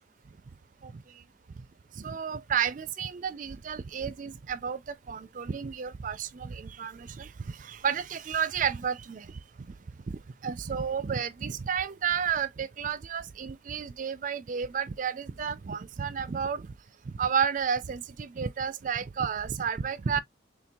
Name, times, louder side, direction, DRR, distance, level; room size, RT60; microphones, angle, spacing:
voice 1, 0.8-1.2 1.9-9.4 9.7-9.8 10.1-16.7 17.1-20.2, right 7 dB, 40° right, 0.4 m, -32 dB
4.4 x 3.1 x 2.3 m
head